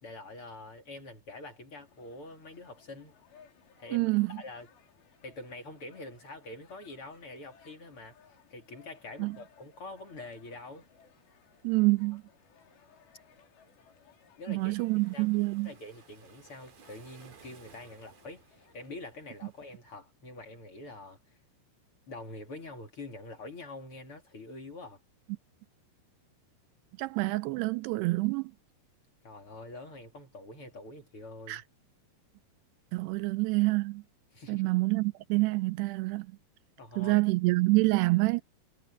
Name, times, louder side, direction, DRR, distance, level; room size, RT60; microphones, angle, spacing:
voice 1, 0.0-3.2 3.8-4.7 5.2-8.2 8.5-10.9 14.4-14.8 15.1-15.3 15.6-21.4 22.1-25.0 29.2-31.6 34.3-34.7 36.8-37.2, left 2 dB, 35° left, 3.1 m, -45 dB
sound 1, 1.8-18.9, left 7 dB, 80° left, 5.9 m, -62 dB
voice 2, 3.9-4.4 9.2-9.4 11.6-12.2 14.5-15.7 27.0-28.5 31.5-31.6 32.9-34.0 34.5-36.3 37.0-38.4, right 23 dB, 80° right, 2.5 m, -27 dB
Waves surf, 14.6-19.8, right 7 dB, 55° right, 4.4 m, -59 dB
omnidirectional pair, 4.9 m